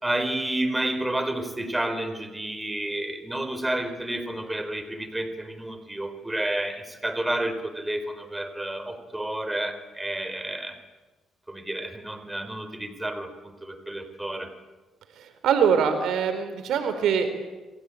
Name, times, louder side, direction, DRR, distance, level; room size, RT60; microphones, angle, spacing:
voice 1, 0.0-10.8 11.5-14.5, right 1 dB, 10° right, 9 dB, 4.4 m, -30 dB
voice 2, 15.2-17.3, right 7 dB, 75° right, 9 dB, 4.3 m, -23 dB
29.0 x 23.0 x 8.6 m, 1.2 s
cardioid pair, 90°, 0 cm